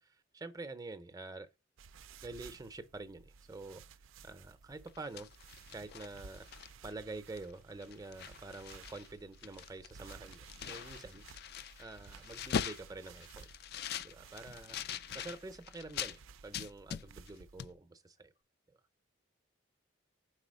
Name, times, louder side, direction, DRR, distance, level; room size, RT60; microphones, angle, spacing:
voice 1, 0.0-1.5 2.2-3.8 4.2-5.3 5.7-6.5 6.8-11.2 11.8-13.5 14.0-14.8 15.1-18.3, right 3 dB, 20° right, 0.6 m, -47 dB
sound 1, 1.8-17.6, right 5 dB, 80° right, 0.4 m, -56 dB
sound 2, 4.9-6.9 7.4-7.5 7.8-9.1 9.3-16.2 16.5-17.3 17.6-17.7, left 8 dB, 55° left, 0.4 m, -42 dB
4.9 x 4.0 x 5.1 m
head